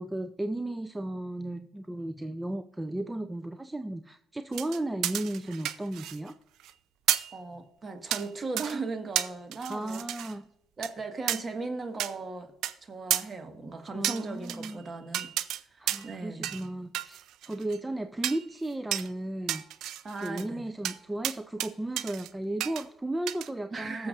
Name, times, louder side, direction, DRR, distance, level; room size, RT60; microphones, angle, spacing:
voice 1, 0.0-6.3 9.7-10.5 13.9-14.8 15.8-19.6 20.2-24.1, right 1 dB, 15° right, 10 dB, 0.5 m, -35 dB
sound 1, 4.5-6.3 6.6-6.7 7.1-7.3 8.1-8.3 8.6-8.7 9.1-10.3 10.8-10.9 11.3-11.4 12.0-12.1 12.6-12.7 13.1-13.2 14.0-14.7 15.1-15.6 15.9-16.1 16.4-16.7 16.9-17.8 18.2-18.4 18.9-19.1 19.5-20.4 20.8-21.0 21.2-21.7 22.0-22.3 22.6-22.8 23.3-23.5, right 12 dB, 70° right, 0.4 m, -31 dB
voice 2, 7.3-10.0 10.8-12.5 12.8-15.3 15.6-16.5 20.0-20.6 23.7-24.1, right 3 dB, 35° right, 6 dB, 1.5 m, -37 dB
20.5 x 7.0 x 2.5 m, 0.76 s
hypercardioid pair, 55°, 0 cm